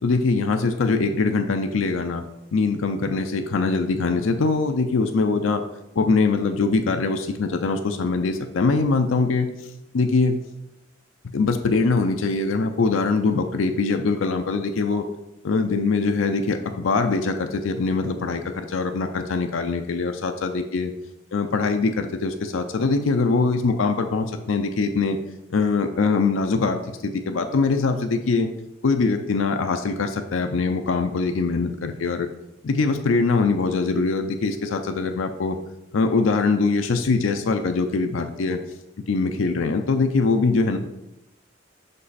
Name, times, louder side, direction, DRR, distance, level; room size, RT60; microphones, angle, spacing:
voice 1, 0.0-2.2 2.5-5.6 6.0-9.5 9.9-10.4 11.3-15.0 15.4-20.9 21.3-25.2 25.5-28.5 28.8-32.3 32.6-35.6 35.9-38.6 39.1-40.8, left 4 dB, 85° left, 6 dB, 0.5 m, -22 dB
5.7 x 5.3 x 4.1 m, 0.90 s
head